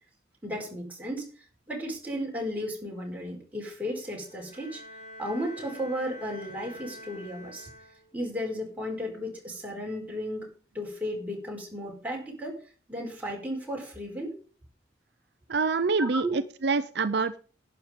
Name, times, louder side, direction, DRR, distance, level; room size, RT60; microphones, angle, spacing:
voice 1, 0.4-1.3 1.7-4.8 5.2-7.7 8.1-12.6 12.9-14.4 16.0-16.4, equal, 10° right, -2 dB, 4.8 m, -34 dB
Bowed string instrument, 4.1-8.3, equal, 60° left, 7.2 m, -46 dB
voice 2, 15.5-17.4, right 4 dB, 60° right, 10 dB, 0.6 m, -26 dB
11.5 x 9.4 x 5.2 m, 0.39 s
head